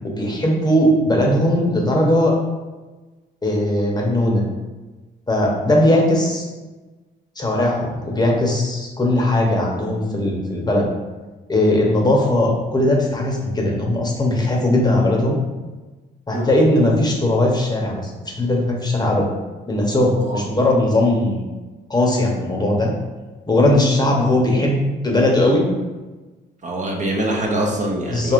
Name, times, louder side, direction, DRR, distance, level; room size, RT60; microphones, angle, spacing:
voice 1, 0.2-2.4 3.4-4.4 5.3-6.5 7.4-10.9 11.5-15.4 16.3-19.3 19.7-21.4 21.9-22.9 23.5-25.6 28.1-28.3, left 1 dB, 20° left, -1 dB, 0.9 m, -18 dB
voice 2, 26.6-28.3, right 1 dB, 35° right, 0 dB, 0.7 m, -24 dB
4.6 x 2.8 x 2.5 m, 1.2 s
cardioid pair, 90°, 20 cm